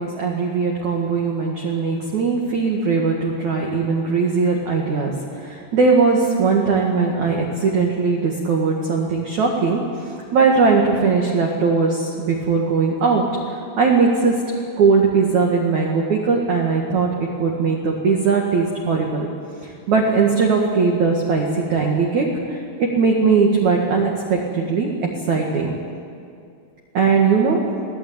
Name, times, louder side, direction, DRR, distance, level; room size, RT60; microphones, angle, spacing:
voice 1, 0.0-14.4 14.8-17.1 17.4-19.3 19.6-24.9 25.3-25.7 26.9-27.6, right 4 dB, 50° right, -1 dB, 2.4 m, -19 dB
25.5 x 17.5 x 8.9 m, 2.4 s
omnidirectional pair, 5.9 m